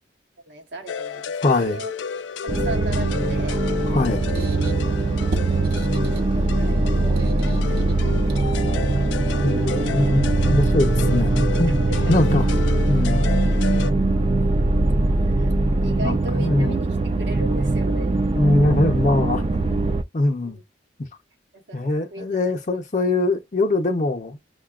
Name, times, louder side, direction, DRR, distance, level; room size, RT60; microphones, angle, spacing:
voice 1, 0.5-1.9 2.4-3.6 5.4-8.3 11.9-12.6 15.4-15.5 15.8-18.2 20.4-20.6 21.5-22.6, right 1 dB, 80° right, 1.0 m, -37 dB
sound 1, 0.9-13.9, left 6 dB, 85° left, 0.3 m, -33 dB
voice 2, 1.4-1.8 3.9-4.3 9.4-11.8 12.1-12.5 12.9-13.3 16.0-16.7 18.4-19.4 20.1-20.6 21.0-21.1 21.7-24.4, left 2 dB, 45° left, 0.6 m, -22 dB
sound 2, 2.5-20.0, right 2 dB, 30° right, 0.3 m, -21 dB
Squeak, 3.7-8.9, right 1 dB, 60° right, 0.6 m, -36 dB
6.5 x 2.2 x 2.3 m
head